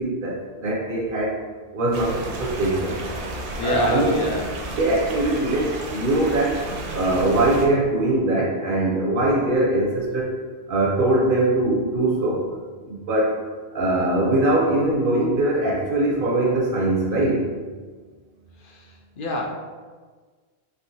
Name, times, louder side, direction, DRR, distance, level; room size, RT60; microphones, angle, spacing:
voice 1, 0.0-1.4 1.7-3.0 3.6-4.3 4.7-6.6 6.9-10.4 10.7-12.5 12.9-13.4 13.7-17.5, right 1 dB, 60° right, -2 dB, 0.6 m, -22 dB
sound 1, 1.9-7.7, right 2 dB, 85° right, 0.9 m, -32 dB
voice 2, 3.1-4.8 18.6-18.9 19.2-19.5, left 1 dB, 60° left, -1 dB, 0.6 m, -27 dB
3.4 x 2.7 x 2.7 m, 1.5 s
omnidirectional pair, 1.1 m